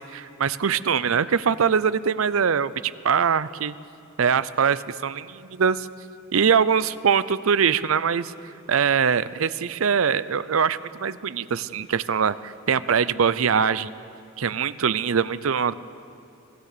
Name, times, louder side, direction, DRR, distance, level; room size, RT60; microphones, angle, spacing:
voice 1, 0.1-3.7 4.2-5.9 6.3-8.3 8.7-13.9 14.4-15.7, right 6 dB, 70° right, 16 dB, 0.6 m, -22 dB
25.5 x 16.5 x 6.7 m, 2.6 s
head